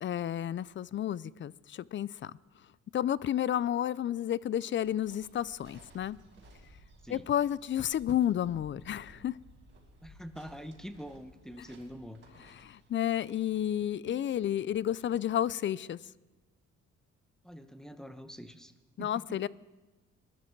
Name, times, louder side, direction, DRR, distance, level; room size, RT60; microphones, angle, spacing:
voice 1, 0.0-2.3 2.9-6.2 7.1-9.3 12.6-16.0 19.0-19.5, left 11 dB, 40° left, 21 dB, 0.4 m, -31 dB
sound 1, 4.7-13.8, right 1 dB, 40° right, 5.6 m, -58 dB
voice 2, 10.0-12.2 17.4-18.7 19.0-19.4, equal, ahead, 8 dB, 1.0 m, -45 dB
20.0 x 12.0 x 4.6 m, 1.2 s
cardioid pair, 90°, 30 cm